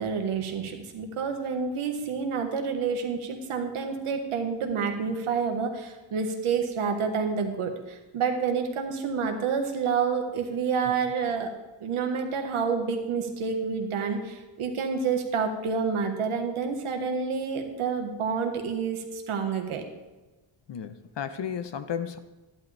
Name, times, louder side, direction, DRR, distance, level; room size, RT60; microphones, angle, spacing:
voice 1, 0.0-11.5 11.8-19.8, right 5 dB, 80° right, 4 dB, 1.6 m, -28 dB
voice 2, 20.7-22.2, left 8 dB, 55° left, 11 dB, 0.9 m, -33 dB
12.0 x 10.5 x 3.4 m, 1.1 s
cardioid pair, 75°, 50 cm